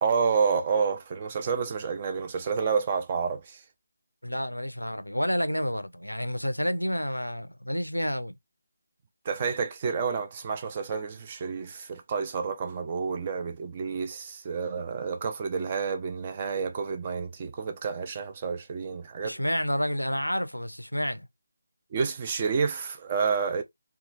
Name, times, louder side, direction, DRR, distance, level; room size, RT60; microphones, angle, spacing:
voice 1, 0.0-3.6 9.2-19.4 21.9-23.6, right 5 dB, 25° right, 0.4 m, -29 dB
voice 2, 4.2-8.4 19.2-21.3, equal, 85° left, 0.4 m, -29 dB
2.8 x 2.3 x 2.5 m
figure-of-eight pair, 155°, 0 cm